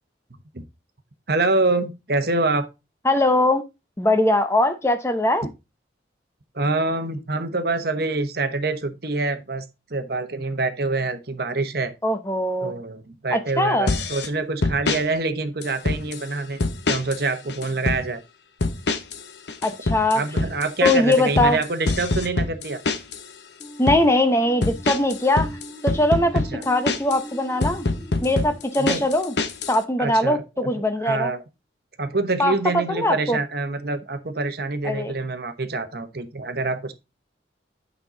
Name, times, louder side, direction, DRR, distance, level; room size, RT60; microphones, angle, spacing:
voice 1, 1.3-2.7 6.5-9.6 9.9-11.9 12.6-16.6 16.9-18.2 20.1-22.8 26.3-26.6 28.8-29.1 30.0-31.4 32.0-36.9, right 3 dB, 55° right, 1.0 m, -26 dB
voice 2, 3.0-3.6 4.0-5.5 12.0-12.7 13.3-13.9 19.6-20.2 20.8-21.6 23.8-25.5 25.8-27.9 28.2-29.3 29.7-31.3 32.4-33.4 34.8-35.1, left 1 dB, 15° left, 0.7 m, -21 dB
sound 1, 13.9-14.3 14.6-15.0 15.6-16.2 16.6-17.2 17.5-18.0 18.6-19.2 19.5-23.2 23.6-24.0 24.6-27.2 27.6-29.8, left 3 dB, 65° left, 0.9 m, -24 dB
sound 2, 23.6-30.5, equal, 15° right, 1.9 m, -42 dB
8.9 x 5.5 x 3.8 m
head